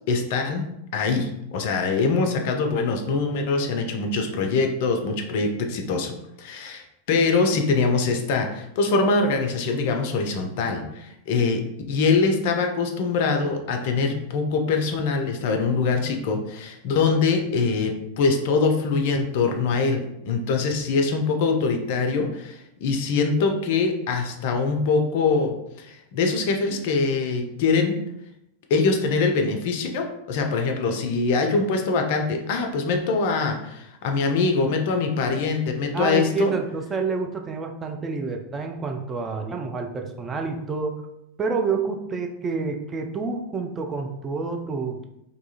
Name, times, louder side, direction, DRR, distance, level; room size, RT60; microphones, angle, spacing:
voice 1, 0.1-11.6 11.9-27.9 28.7-36.5, left 4 dB, 50° left, 4 dB, 0.4 m, -23 dB
voice 2, 35.9-41.0 41.4-45.0, right 4 dB, 20° right, 3 dB, 0.3 m, -28 dB
2.6 x 2.3 x 2.8 m, 0.84 s
figure-of-eight pair, 90°, 0 cm